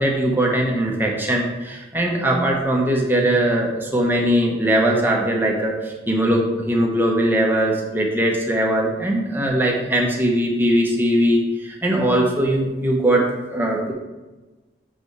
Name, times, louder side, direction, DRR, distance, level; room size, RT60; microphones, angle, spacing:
voice 1, 0.0-13.9, right 1 dB, 10° right, -1 dB, 1.1 m, -20 dB
6.9 x 5.2 x 4.7 m, 1.2 s
head